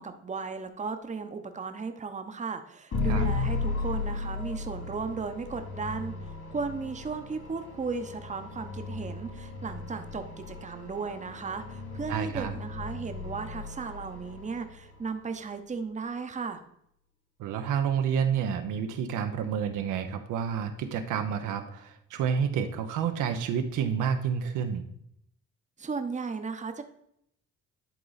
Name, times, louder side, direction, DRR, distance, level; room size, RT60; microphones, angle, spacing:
voice 1, 0.0-16.6 25.8-26.8, right 4 dB, 25° right, 8 dB, 0.8 m, -35 dB
sound 1, 2.9-15.1, left 4 dB, 55° left, 2.4 m, -35 dB
voice 2, 12.1-12.5 17.4-24.8, right 7 dB, 90° right, 6 dB, 0.9 m, -29 dB
11.0 x 3.8 x 4.0 m, 0.73 s
cardioid pair, 90°, 30 cm